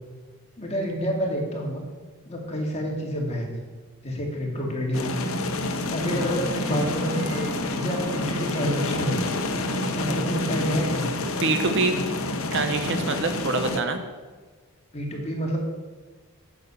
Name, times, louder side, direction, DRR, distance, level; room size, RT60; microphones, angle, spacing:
voice 1, 0.6-1.9 2.2-3.6 4.0-5.4 5.9-7.4 7.7-9.6 9.9-11.1 14.9-15.6, equal, 30° left, 0 dB, 2.3 m, -28 dB
sound 1, 4.9-13.8, left 2 dB, 70° left, 1.0 m, -28 dB
Bowed string instrument, 5.8-11.5, right 1 dB, 20° right, 2.1 m, -41 dB
voice 2, 11.4-12.0 12.5-14.0, right 3 dB, 60° right, 7 dB, 1.1 m, -25 dB
8.4 x 8.3 x 7.0 m, 1.3 s
head